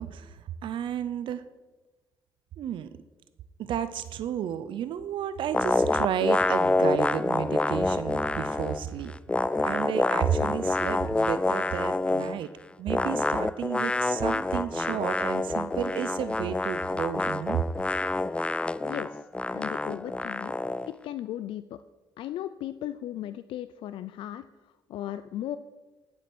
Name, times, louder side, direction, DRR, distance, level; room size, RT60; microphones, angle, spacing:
voice 1, 0.0-1.4 2.6-2.9 3.6-9.1 9.7-12.5 12.8-17.6, right 9 dB, 70° right, 13 dB, 0.6 m, -32 dB
sound 1, 5.5-8.8 9.1-12.4 12.9-20.9, left 2 dB, 10° left, 0.4 m, -27 dB
voice 2, 18.8-19.2 19.5-20.5 21.0-21.8 22.2-25.6, left 12 dB, 80° left, 12 dB, 0.4 m, -36 dB
11.0 x 7.7 x 6.2 m, 1.2 s
cardioid pair, 90°, 9 cm